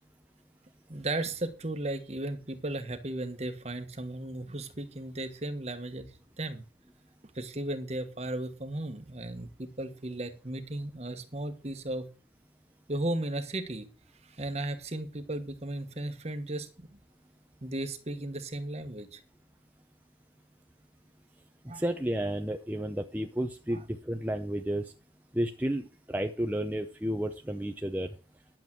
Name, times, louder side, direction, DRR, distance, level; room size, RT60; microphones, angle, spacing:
voice 1, 0.9-6.6 7.3-12.1 12.9-13.9 14.4-16.9 17.6-19.2 21.7-21.8 23.7-23.8, right 1 dB, 35° right, 9 dB, 1.4 m, -35 dB
voice 2, 21.7-24.9 25.3-28.1, right 1 dB, 10° right, 4 dB, 0.7 m, -32 dB
11.0 x 7.5 x 6.1 m, 0.34 s
head